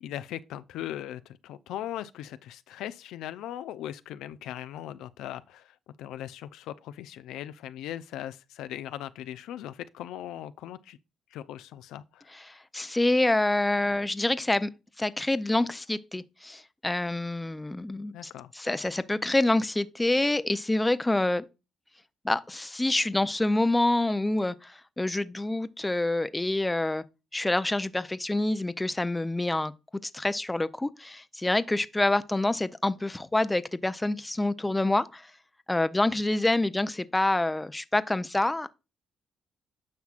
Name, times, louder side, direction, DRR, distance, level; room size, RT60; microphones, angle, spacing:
voice 1, 0.0-11.0 11.3-12.3 18.1-18.5, left 12 dB, 90° left, 0.4 m, -39 dB
voice 2, 12.5-14.7 15.0-18.1 18.5-21.4 22.2-27.0 27.3-29.7 30.1-35.2 35.7-38.7, left 2 dB, 15° left, 0.5 m, -27 dB
9.5 x 5.8 x 2.4 m
cardioid pair, 90°, 0 cm